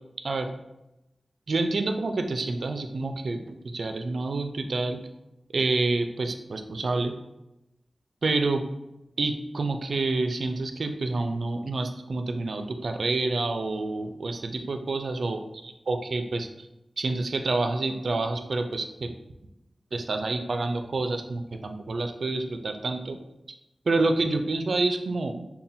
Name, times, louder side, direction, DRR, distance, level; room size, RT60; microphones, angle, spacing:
voice 1, 1.5-5.0 5.5-7.1 8.2-8.7 9.2-16.7 17.0-19.1 19.9-23.2 23.9-25.3, right 3 dB, 70° right, 6 dB, 0.3 m, -28 dB
5.5 x 2.2 x 2.6 m, 0.92 s
wide cardioid pair, 110°, 0 cm